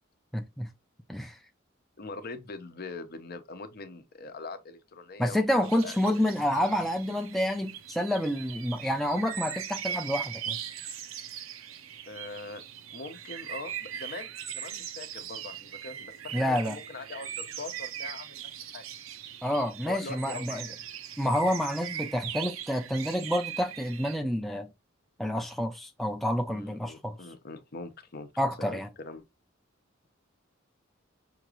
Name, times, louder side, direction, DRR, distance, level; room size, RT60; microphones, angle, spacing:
voice 1, 0.3-0.7 1.1-1.4 5.2-10.6 16.3-16.8 19.4-20.7 21.2-24.7 25.2-27.2 28.4-28.9, equal, ahead, 0.4 m, -29 dB
voice 2, 2.0-6.2 12.1-12.6 12.9-18.9 19.9-20.7 26.5-28.3 28.6-29.2, left 3 dB, 50° left, 0.7 m, -42 dB
sound 1, 5.6-24.2, right 9 dB, 85° right, 0.6 m, -40 dB
5.8 x 2.5 x 3.0 m
head